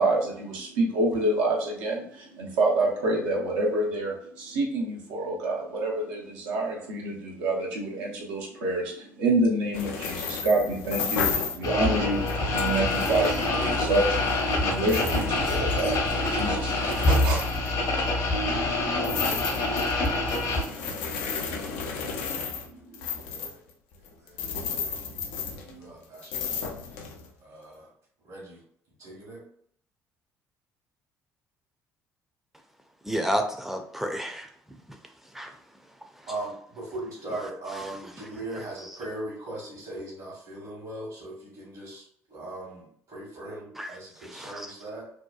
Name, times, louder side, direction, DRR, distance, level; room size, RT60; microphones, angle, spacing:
voice 1, 0.0-23.1, right 2 dB, 75° right, -2 dB, 0.7 m, -29 dB
sound 1, 9.7-11.7 12.1-18.1 19.0-25.9 26.2-27.3, left 5 dB, 75° left, 0.4 m, -34 dB
sound 2, 11.6-20.6, left 2 dB, 50° left, 0.8 m, -26 dB
voice 2, 23.0-23.6 24.2-24.3 24.8-27.1 27.4-27.9 28.2-28.6 29.0-29.4 36.3-42.0 42.3-45.1, right 2 dB, 55° right, -5 dB, 1.1 m, -39 dB
voice 3, 33.0-34.5 35.3-35.5 43.8-43.9 44.2-44.7, equal, 5° right, 4 dB, 0.5 m, -30 dB
2.7 x 2.2 x 2.3 m, 0.63 s
hypercardioid pair, 55°, 8 cm